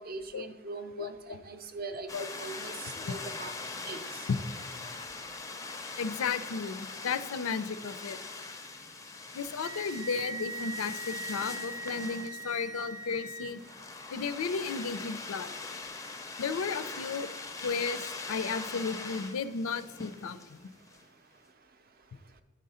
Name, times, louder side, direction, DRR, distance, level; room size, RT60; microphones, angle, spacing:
voice 1, 0.0-2.7 3.0-3.5 3.9-4.0, right 3 dB, 45° right, 9 dB, 0.5 m, -41 dB
voice 2, 1.0-1.4 2.1-2.2 3.1-3.2 4.3-4.4 6.0-8.2 9.3-13.6 14.1-15.5 16.4-17.3 17.6-20.6, left 5 dB, 75° left, 13 dB, 0.4 m, -34 dB
sound 1, 2.1-21.0, left 3 dB, 15° left, 0.4 m, -42 dB
Wind instrument woodwind instrument, 9.6-13.5, right 2 dB, 85° right, 0.8 m, -40 dB
10.0 x 3.7 x 5.5 m, 1.4 s
head